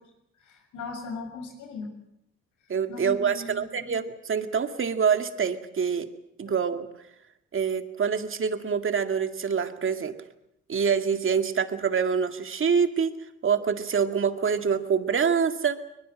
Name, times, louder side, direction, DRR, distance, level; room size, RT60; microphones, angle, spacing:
voice 1, 0.4-1.9 2.9-4.0, left 3 dB, 85° left, 5 dB, 7.0 m, -38 dB
voice 2, 2.7-6.1 6.4-6.9 7.5-10.1 10.7-13.1 13.4-15.8, right 6 dB, 45° right, 7 dB, 2.1 m, -25 dB
21.5 x 21.0 x 7.8 m, 0.84 s
cardioid pair, 90°, 30 cm